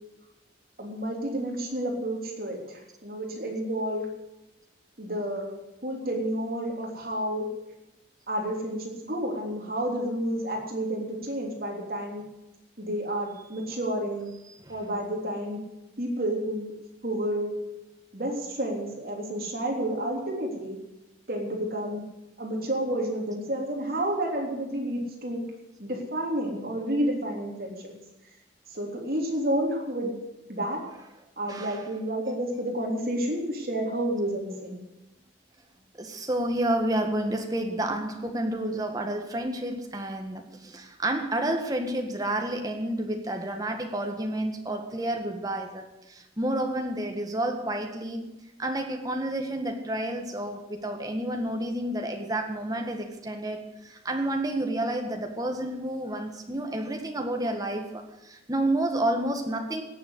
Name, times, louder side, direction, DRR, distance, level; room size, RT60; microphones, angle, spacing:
voice 1, 0.8-2.6 3.0-4.1 5.0-5.6 5.8-7.5 8.3-12.2 12.8-14.3 14.7-15.6 16.0-16.7 17.0-17.5 18.1-20.8 21.3-22.0 22.4-25.4 25.8-27.9 28.7-30.2 30.5-30.8 31.4-34.8, right 1 dB, 55° right, 0 dB, 3.4 m, -30 dB
voice 2, 26.4-26.9 30.9-31.1 31.5-31.9 36.0-45.8 46.1-48.3 48.6-59.8, right 1 dB, 20° right, 3 dB, 1.7 m, -30 dB
17.5 x 7.3 x 8.2 m, 0.94 s
head